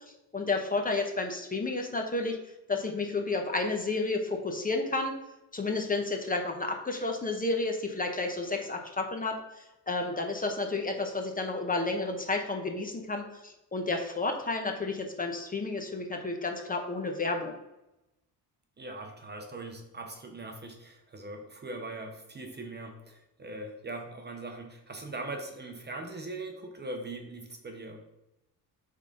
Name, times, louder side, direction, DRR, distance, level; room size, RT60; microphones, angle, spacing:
voice 1, 0.3-2.4 2.7-5.1 5.5-9.4 9.9-17.5, left 3 dB, 20° left, 3 dB, 0.8 m, -31 dB
voice 2, 18.8-28.0, right 2 dB, 25° right, 4 dB, 0.7 m, -41 dB
8.1 x 3.7 x 3.8 m, 0.93 s
cardioid pair, 130°, 39 cm